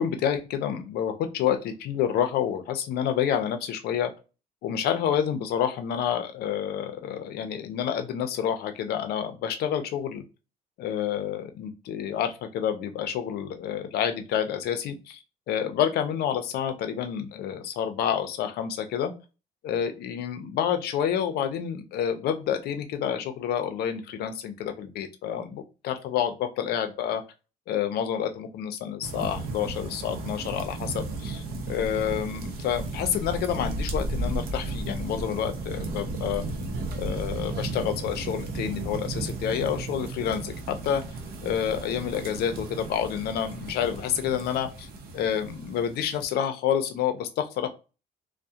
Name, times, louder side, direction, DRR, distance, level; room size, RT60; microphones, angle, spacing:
voice 1, 0.0-4.1 4.6-10.2 10.8-15.2 15.5-19.1 19.6-27.2 27.7-36.4 36.9-41.0 41.4-44.9 45.1-47.7, left 9 dB, 70° left, 8 dB, 0.5 m, -28 dB
sound 1, 29.0-46.3, right 2 dB, 65° right, 0.6 m, -34 dB
2.3 x 2.1 x 2.7 m, 0.31 s
cardioid pair, 110°, 17 cm